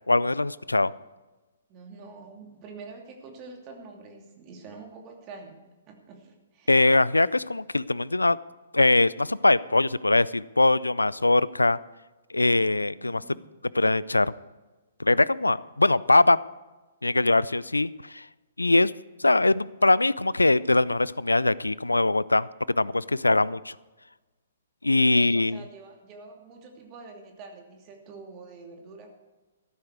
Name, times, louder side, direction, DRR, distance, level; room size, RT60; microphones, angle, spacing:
voice 1, 0.1-0.9 6.7-8.4 8.7-11.8 12.3-13.2 13.7-14.3 15.0-16.4 17.0-18.3 18.6-18.9 19.2-23.7 24.8-25.6, left 2 dB, 85° left, 21 dB, 0.4 m, -22 dB
voice 2, 1.7-6.9 13.0-13.5 24.8-29.1, right 4 dB, 30° right, 2 dB, 2.7 m, -46 dB
14.0 x 12.5 x 4.7 m, 1.2 s
figure-of-eight pair, 120°, 0 cm